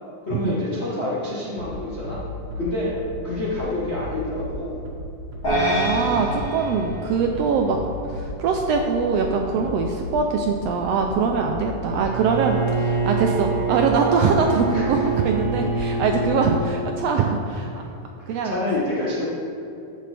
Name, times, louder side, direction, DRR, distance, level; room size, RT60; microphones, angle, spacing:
voice 1, 0.3-2.2 2.5-3.0 3.2-4.8 14.7-15.1 17.7-17.9 18.3-19.2, left 2 dB, 75° left, -7 dB, 0.6 m, -28 dB
Bass drum, 1.6-16.6, left 1 dB, 65° right, 2.6 m, -35 dB
sound 1, 5.4-7.9, equal, 35° left, 2.2 m, -26 dB
voice 2, 5.5-7.8 8.1-17.7 18.3-18.5, right 5 dB, 80° right, 3 dB, 1.4 m, -22 dB
Bowed string instrument, 12.0-16.8, right 4 dB, 10° right, 1.4 m, -25 dB
14.0 x 6.8 x 3.4 m, 2.8 s
omnidirectional pair, 3.4 m